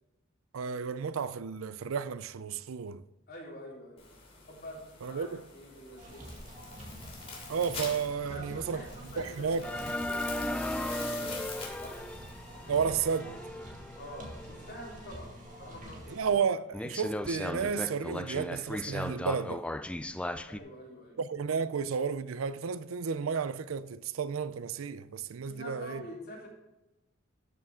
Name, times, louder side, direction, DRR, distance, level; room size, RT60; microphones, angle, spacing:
voice 1, 0.5-3.0 5.0-5.4 7.5-8.8 9.2-9.7 12.7-13.3 16.1-19.6 21.2-26.0, right 6 dB, 85° right, 0.4 m, -32 dB
voice 2, 3.3-4.0 4.5-6.3 8.3-11.5 11.8-12.1 14.0-16.3 20.4-21.2 25.4-26.5, equal, 50° left, 3.9 m, -47 dB
sound 1, 4.0-13.2, left 4 dB, 30° left, 2.7 m, -46 dB
sound 2, 6.0-16.4, equal, 40° right, 2.1 m, -47 dB
sound 3, 9.6-15.0 15.5-15.6 16.2-16.3 16.7-20.6, left 1 dB, 5° left, 0.3 m, -37 dB
12.5 x 6.7 x 3.7 m
head